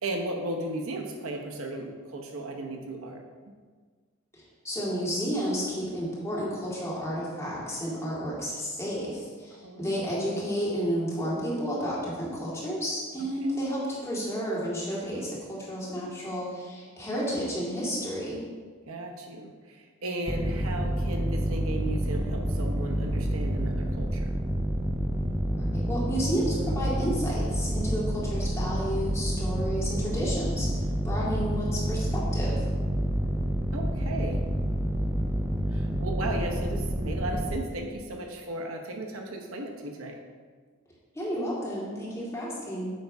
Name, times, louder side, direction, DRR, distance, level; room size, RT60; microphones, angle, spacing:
voice 1, 0.0-3.2 9.6-9.9 18.9-24.2 33.7-34.4 35.7-40.2, right 1 dB, 80° right, 2 dB, 0.9 m, -35 dB
voice 2, 4.3-18.4 25.5-30.7 31.0-32.7 41.1-42.9, equal, 15° left, -7 dB, 2.3 m, -31 dB
sound 1, 20.3-37.6, right 1 dB, 15° right, 0.5 m, -28 dB
8.5 x 3.5 x 5.4 m, 1.5 s
head